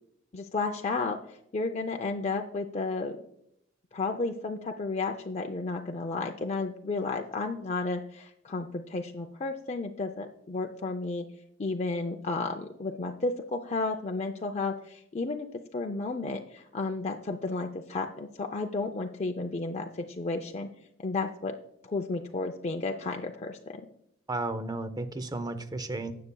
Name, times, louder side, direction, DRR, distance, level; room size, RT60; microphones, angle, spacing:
voice 1, 0.3-3.1 3.9-11.2 11.6-15.5 15.7-19.8 20.2-20.7 21.0-21.5 21.8-23.8, left 3 dB, 35° left, 3 dB, 0.5 m, -32 dB
voice 2, 24.3-26.1, right 2 dB, 20° right, 10 dB, 0.6 m, -33 dB
16.5 x 6.7 x 2.3 m, 0.77 s
head